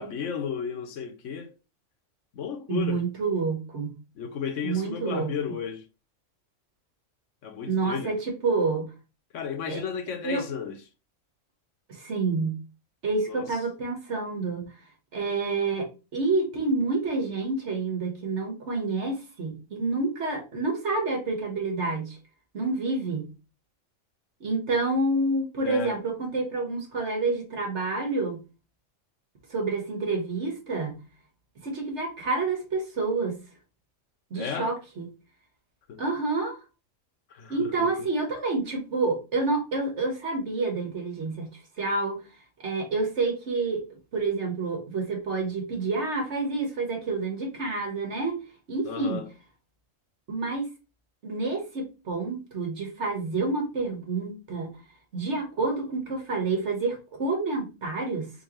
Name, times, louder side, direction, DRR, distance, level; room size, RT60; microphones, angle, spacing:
voice 1, 0.0-1.5 2.3-3.0 4.2-5.9 7.4-8.1 9.3-10.8 13.3-13.6 25.6-26.0 34.3-34.7 35.9-36.0 37.3-38.1 48.9-49.3, left 6 dB, 75° left, 1.1 m, -34 dB
voice 2, 2.7-4.0 4.6-5.3 7.7-8.9 9.7-9.8 10.2-10.5 11.9-12.7 13.0-14.8 15.1-22.2 22.5-23.3 24.4-28.4 29.5-31.0 31.6-33.4 34.3-35.1 36.0-36.6 37.5-42.2 42.6-43.8 44.1-48.4 48.7-49.3 50.3-50.7 51.2-54.7 55.1-58.3, right 3 dB, 65° right, 1.7 m, -28 dB
4.1 x 3.9 x 3.0 m
omnidirectional pair, 1.3 m